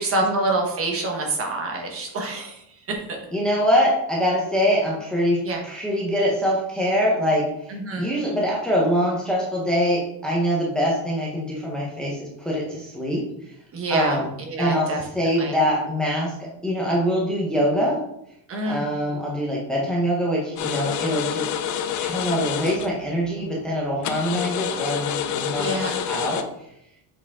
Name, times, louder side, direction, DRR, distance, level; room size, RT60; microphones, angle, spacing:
voice 1, 0.0-3.0 5.4-5.6 7.7-8.1 13.7-15.1 15.4-15.6 18.5-18.9 25.5-26.0, right 2 dB, 30° right, 1 dB, 1.2 m, -26 dB
voice 2, 3.3-13.2 13.9-14.3 14.6-14.9 15.1-16.3 16.6-18.0 18.6-21.5 22.0-25.7 26.1-26.4, equal, ahead, -4 dB, 0.9 m, -24 dB
sound 1, 20.6-22.9 24.0-26.4, left 9 dB, 40° left, 0.5 m, -28 dB
7.2 x 4.9 x 3.6 m, 0.77 s
cardioid pair, 175°, 43 cm